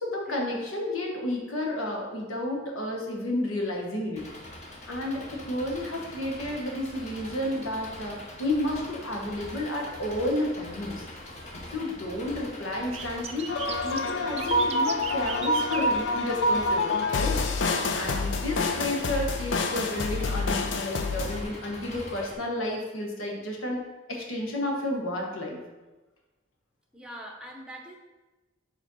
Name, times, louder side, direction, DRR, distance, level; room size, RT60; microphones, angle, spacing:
voice 1, 0.0-4.2 4.9-11.0 11.7-13.5 13.8-23.8 24.1-25.6, left 1 dB, 80° left, -1 dB, 1.4 m, -31 dB
Engine, 4.2-22.3, left 1 dB, 35° left, 0.9 m, -43 dB
sound 1, 12.9-17.1 17.4-17.7 18.2-18.3 19.5-19.7 20.0-20.1 21.3-21.4 22.0-22.1, right 6 dB, 30° right, 0.4 m, -38 dB
sound 2, 13.5-21.4, left 2 dB, 60° left, 0.5 m, -27 dB
voice 2, 17.7-18.2 26.9-28.0, right 1 dB, 5° right, 0 dB, 0.8 m, -44 dB
5.0 x 4.5 x 5.4 m, 1.2 s
head